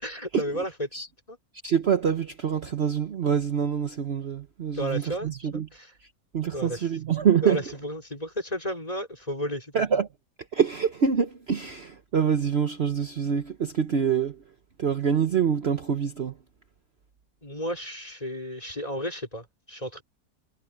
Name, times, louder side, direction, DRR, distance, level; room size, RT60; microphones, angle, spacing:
voice 1, 0.0-0.9 1.3-1.4 4.8-5.9 6.5-6.9 7.4-9.7 17.4-20.0, equal, 25° left, 4.4 m, -33 dB
voice 2, 1.6-5.7 6.3-7.6 9.7-10.1 10.5-14.4 14.8-16.3, right 7 dB, 50° right, 1.1 m, -25 dB
omnidirectional pair, 1.6 m